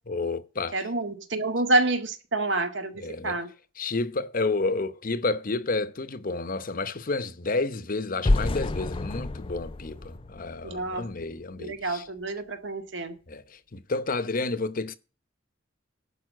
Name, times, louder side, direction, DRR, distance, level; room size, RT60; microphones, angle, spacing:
voice 1, 0.1-0.8 3.0-3.4 3.8-12.1 13.3-13.4 13.7-14.9, left 3 dB, 45° left, 0.8 m, -30 dB
voice 2, 0.7-3.5 10.6-11.1 11.6-13.1, right 2 dB, 65° right, 1.8 m, -28 dB
sound 1, 8.2-11.2, left 2 dB, 30° left, 0.5 m, -28 dB
11.0 x 5.6 x 7.5 m
head